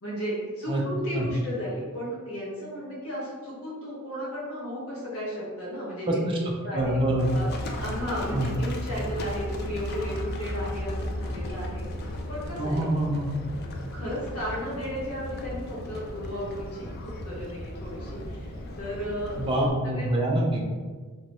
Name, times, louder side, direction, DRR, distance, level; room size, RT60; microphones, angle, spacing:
voice 1, 0.0-6.9 7.3-7.5 7.8-11.9 12.3-12.9 13.4-13.5 13.9-18.5 18.8-20.2, equal, 90° left, -6 dB, 1.2 m, -34 dB
voice 2, 6.1-6.4 6.7-7.3 8.3-8.5 12.6-13.3 19.4-20.6, right 1 dB, 25° right, -1 dB, 0.4 m, -25 dB
sound 1, 6.7-12.8, equal, 70° left, 1.4 m, -36 dB
Livestock farm animals working animals, 7.2-19.7, left 1 dB, 50° left, 0.4 m, -37 dB
3.0 x 3.0 x 3.0 m, 1.5 s
head